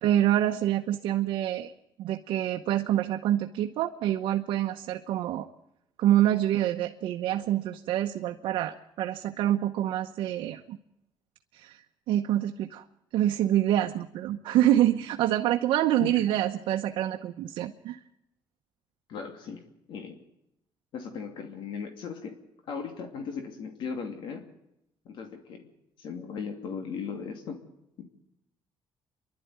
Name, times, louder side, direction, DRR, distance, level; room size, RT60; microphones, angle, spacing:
voice 1, 0.0-1.7 2.0-5.5 6.0-10.8 11.5-11.8 12.1-12.8 13.1-18.0, right 12 dB, 80° right, 4 dB, 0.9 m, -26 dB
voice 2, 19.1-19.6 19.9-20.2 20.9-22.4 22.7-24.4 25.0-25.7 26.0-27.6 28.0-28.1, left 6 dB, 65° left, 4 dB, 2.7 m, -37 dB
27.5 x 11.5 x 9.4 m, 0.86 s
cardioid pair, 135°, 9 cm